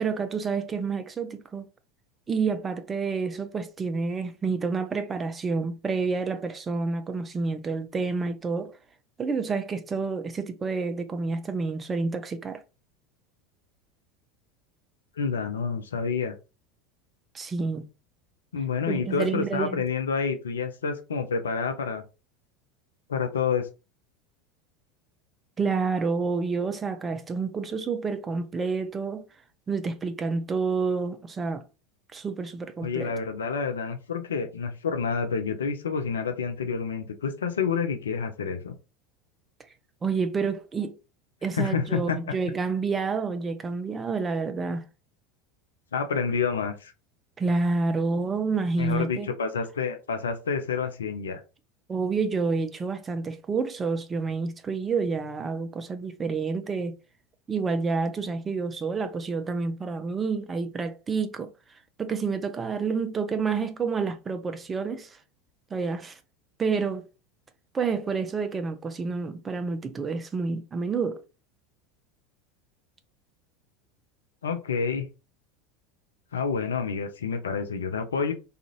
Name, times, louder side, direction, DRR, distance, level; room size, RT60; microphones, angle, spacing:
voice 1, 0.0-1.7 2.3-8.8 9.2-12.6 17.3-17.8 18.9-19.8 25.6-29.2 29.7-31.6 32.1-33.1 40.0-40.9 41.4-44.8 47.4-49.3 51.9-57.0 57.5-61.5 62.0-65.2 65.7-66.2 66.6-67.0 67.7-71.2, right 4 dB, 20° right, 0.4 m, -29 dB
voice 2, 15.2-16.3 18.5-22.0 23.1-23.7 32.8-38.8 41.6-42.2 45.9-46.9 48.8-51.4 74.4-75.1 76.3-78.3, left 5 dB, 70° left, 0.5 m, -28 dB
2.4 x 2.4 x 2.9 m
figure-of-eight pair, 75°, 0 cm